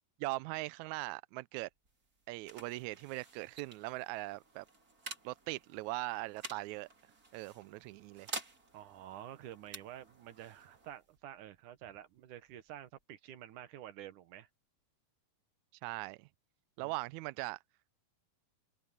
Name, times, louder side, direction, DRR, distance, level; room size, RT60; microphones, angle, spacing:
voice 1, 0.2-1.7 2.3-4.6 5.2-6.9 7.3-8.3 15.8-16.3 16.8-17.6, right 21 dB, 85° right, 1.7 m, -40 dB
sound 1, 1.7-13.0, right 3 dB, 25° right, 3.0 m, -51 dB
voice 2, 8.7-14.5 16.8-16.9, right 11 dB, 70° right, 2.6 m, -49 dB
omnidirectional pair, 3.9 m